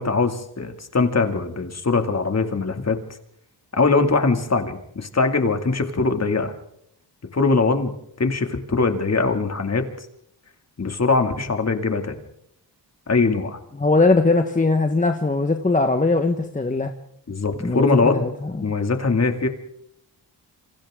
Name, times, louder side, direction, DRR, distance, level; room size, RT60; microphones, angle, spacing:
voice 1, 0.0-3.0 3.7-6.5 7.3-7.9 8.2-10.1 10.8-12.2 13.1-13.6 17.3-18.2 18.6-19.5, left 3 dB, 35° left, 6 dB, 2.6 m, -21 dB
voice 2, 13.8-16.9 17.6-18.3, left 3 dB, 20° left, 5 dB, 1.4 m, -20 dB
28.0 x 25.0 x 3.8 m, 0.74 s
cardioid pair, 95°, 43 cm